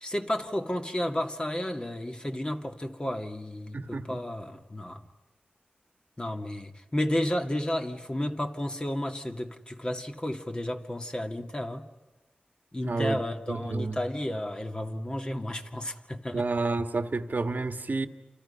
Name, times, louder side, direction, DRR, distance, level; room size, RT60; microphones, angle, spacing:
voice 1, 0.0-5.0 6.2-11.9 12.7-16.4, left 1 dB, 25° left, 2.3 m, -32 dB
voice 2, 3.7-4.2 12.8-13.2 13.5-14.0 16.3-18.1, right 3 dB, 55° right, 1.6 m, -30 dB
28.5 x 28.5 x 5.8 m
cardioid pair, 55°, 4 cm